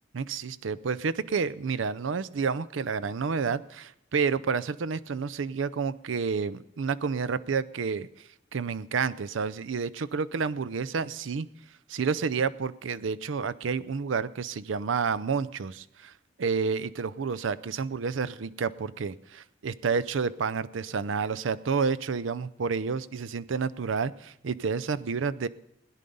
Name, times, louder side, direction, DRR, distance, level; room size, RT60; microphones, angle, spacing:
voice 1, 0.1-8.1 8.5-11.5 11.9-16.1 16.4-25.5, right 5 dB, 80° right, 16 dB, 0.5 m, -30 dB
17.5 x 10.0 x 5.4 m, 0.79 s
head